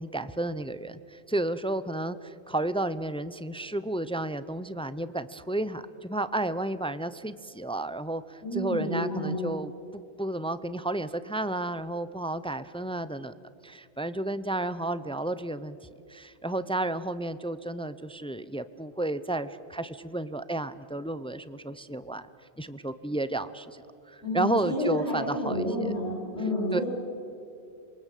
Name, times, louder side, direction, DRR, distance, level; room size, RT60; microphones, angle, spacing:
voice 1, 0.0-13.3 13.6-15.8 16.1-22.3 22.6-23.8 24.1-25.9 26.7-26.8, right 1 dB, 5° left, 13 dB, 0.4 m, -32 dB
voice 2, 8.4-9.5 24.2-26.8, left 1 dB, 75° left, -5 dB, 8.0 m, -30 dB
27.0 x 23.0 x 8.4 m, 2.5 s
omnidirectional pair, 1.1 m